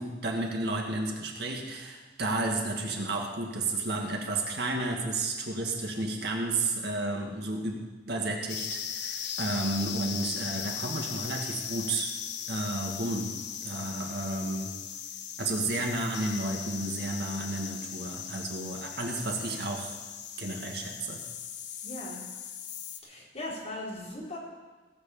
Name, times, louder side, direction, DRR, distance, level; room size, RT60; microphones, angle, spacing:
voice 1, 0.0-7.8 8.1-12.1 12.5-14.8 15.4-19.9 20.4-21.2, right 2 dB, 65° right, 1 dB, 2.1 m, -32 dB
sound 1, 8.5-23.0, left 8 dB, 75° left, 0.9 m, -38 dB
voice 2, 21.8-22.2 23.0-24.4, left 1 dB, 35° left, -5 dB, 4.2 m, -39 dB
17.5 x 6.4 x 7.1 m, 1.3 s
head